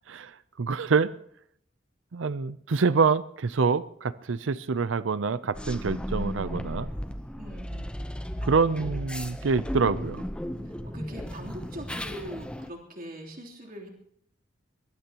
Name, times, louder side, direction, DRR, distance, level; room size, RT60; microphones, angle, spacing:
voice 1, 0.6-1.1 2.1-6.9 8.4-10.3, right 5 dB, 75° right, 0.6 m, -26 dB
sound 1, 5.5-12.7, equal, 5° left, 0.8 m, -35 dB
voice 2, 7.4-7.9 10.8-13.9, equal, 50° right, 3.3 m, -41 dB
23.5 x 20.5 x 3.0 m
head